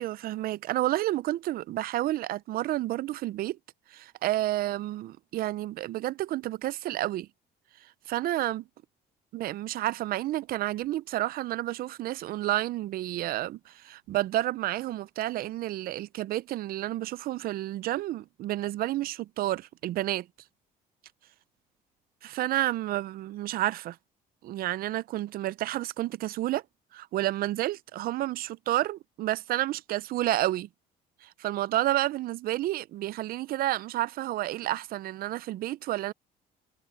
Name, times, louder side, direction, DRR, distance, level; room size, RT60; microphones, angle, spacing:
voice 1, 0.0-3.6 3.9-7.3 8.1-8.6 9.3-20.3 22.2-24.0 24.4-26.6 26.9-30.7 31.2-36.1, right 15 dB, 60° right, 0.4 m, -30 dB
cardioid pair, 110°, 17 cm